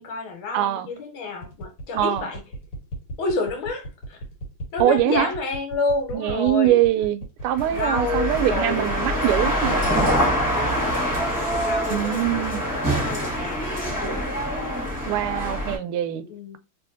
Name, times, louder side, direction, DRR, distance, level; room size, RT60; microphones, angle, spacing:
voice 1, 0.0-2.4 3.2-4.2 4.7-6.8 7.7-9.3 10.5-11.3 11.6-14.3 16.2-16.6, left 3 dB, 70° left, 1.9 m, -29 dB
voice 2, 0.5-0.9 1.9-2.2 4.8-5.3 6.1-9.9 11.9-12.7 15.1-16.2, right 12 dB, 85° right, 1.5 m, -23 dB
sound 1, 1.4-10.0, right 1 dB, 55° left, 1.7 m, -35 dB
sound 2, 7.5-15.8, equal, 10° right, 1.1 m, -25 dB
3.4 x 3.3 x 2.5 m
omnidirectional pair, 2.4 m